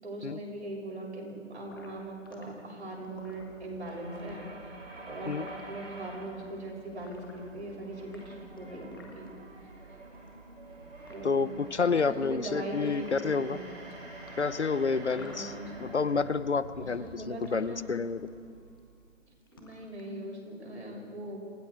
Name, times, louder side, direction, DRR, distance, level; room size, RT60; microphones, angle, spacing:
voice 1, 0.0-4.5 5.1-9.3 11.1-11.6 11.8-13.6 15.1-16.0 16.8-18.0 19.5-21.4, right 1 dB, 60° right, -1 dB, 7.5 m, -40 dB
sound 1, 1.7-2.4 3.0-5.6 6.3-6.5 7.0-7.7 8.0-9.3 10.1-10.7 11.1-11.2 12.1-12.7 13.0-13.5 14.3-15.9 16.2-17.7 18.3-18.5 18.8-19.1 19.4-20.1, left 3 dB, 15° left, 1.6 m, -54 dB
sound 2, 2.8-19.2, right 2 dB, 85° right, 7.9 m, -48 dB
voice 2, 11.2-13.6 14.4-15.5 15.8-18.2, left 5 dB, 60° left, 16 dB, 0.9 m, -29 dB
28.5 x 19.0 x 4.9 m, 2.1 s
figure-of-eight pair, 170°, 38 cm